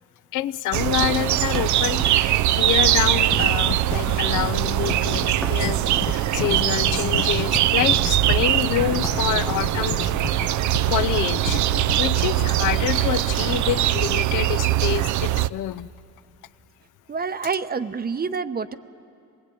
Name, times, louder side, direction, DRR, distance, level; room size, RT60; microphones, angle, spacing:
voice 1, 0.3-10.4 10.9-11.6 12.0-15.9, left 13 dB, 80° left, 13 dB, 0.7 m, -27 dB
sound 1, 0.7-15.5, right 14 dB, 70° right, 0.5 m, -22 dB
Tap, 0.9-4.5 4.8-9.2, left 1 dB, ahead, 1.0 m, -38 dB
sound 2, 3.1-14.3, left 9 dB, 45° left, 0.6 m, -34 dB
voice 2, 17.1-18.8, right 5 dB, 30° right, 12 dB, 0.8 m, -27 dB
26.0 x 19.5 x 8.7 m, 2.5 s
cardioid pair, 90°, 30 cm